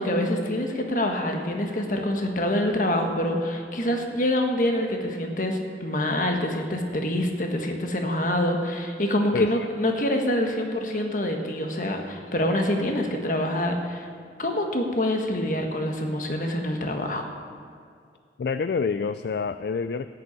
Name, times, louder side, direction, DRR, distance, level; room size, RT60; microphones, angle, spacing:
voice 1, 0.0-14.1 14.4-17.3, left 1 dB, 50° left, 3 dB, 1.3 m, -26 dB
voice 2, 9.3-9.7 18.4-20.1, left 5 dB, 65° left, 12 dB, 0.3 m, -27 dB
13.0 x 6.9 x 8.7 m, 2.2 s
head